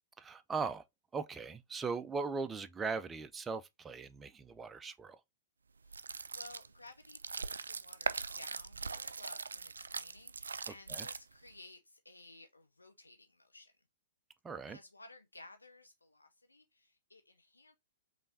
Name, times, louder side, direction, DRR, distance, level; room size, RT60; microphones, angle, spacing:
voice 1, 0.2-0.8 1.1-5.2 10.9-11.1 14.4-14.8, right 4 dB, 15° right, 0.5 m, -39 dB
voice 2, 5.8-13.7 14.7-17.8, left 2 dB, 85° left, 0.6 m, -56 dB
sound 1, 5.8-11.5, right 4 dB, 75° right, 0.3 m, -41 dB
5.2 x 3.3 x 2.6 m
figure-of-eight pair, 110°, 0 cm